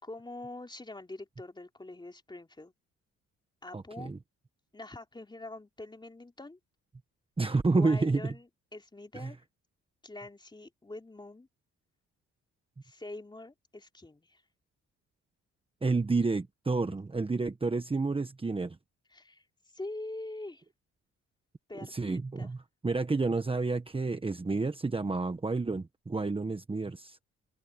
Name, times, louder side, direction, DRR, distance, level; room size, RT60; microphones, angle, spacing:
voice 1, 0.0-2.7 3.6-4.1 4.7-6.6 7.7-9.4 10.0-11.5 12.8-14.4 16.9-17.0 19.1-19.4 19.7-20.6 21.7-22.5, left 2 dB, 15° left, 3.1 m, -44 dB
voice 2, 3.7-4.2 7.4-8.3 9.2-9.3 15.8-18.8 21.9-22.6 22.8-27.2, right 3 dB, 20° right, 1.3 m, -30 dB
cardioid pair, 90°, 30 cm